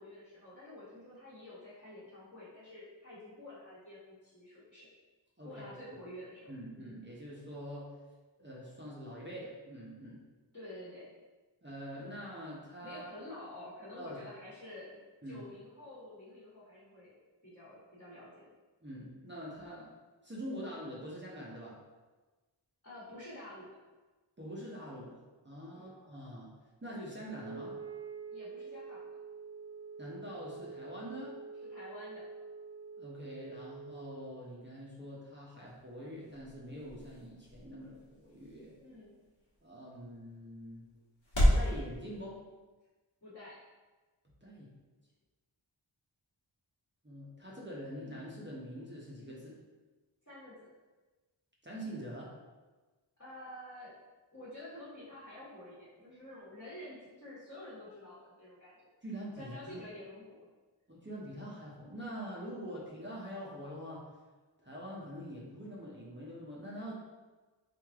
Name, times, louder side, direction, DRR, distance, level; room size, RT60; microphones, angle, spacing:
voice 1, 0.0-4.9 5.4-7.0 10.5-11.1 12.8-15.0 15.2-17.2 17.4-18.4 22.8-23.8 25.7-25.9 28.3-29.1 31.7-32.2 38.8-39.2 43.2-43.6 50.2-50.7 53.2-53.9 54.3-58.9 59.4-60.4 62.6-62.7, left 1 dB, 35° left, -10 dB, 1.3 m, -49 dB
voice 2, 5.4-5.7 6.5-7.9 8.4-10.2 11.6-13.1 14.0-14.2 15.2-15.4 18.8-19.9 20.2-21.8 24.4-26.5 26.8-27.8 30.0-31.3 33.0-38.9 39.6-40.9 41.4-42.4 44.4-44.7 47.0-49.6 51.6-52.3 59.0-59.8 60.9-64.1 64.6-67.0, equal, 25° right, -6 dB, 0.8 m, -44 dB
Wind instrument woodwind instrument, 27.3-34.4, right 4 dB, 70° right, 0.6 m, -47 dB
sound 1, 35.4-41.7, equal, 75° left, 1.3 m, -34 dB
3.2 x 2.6 x 3.5 m, 1.2 s
wide cardioid pair, 45°, 46 cm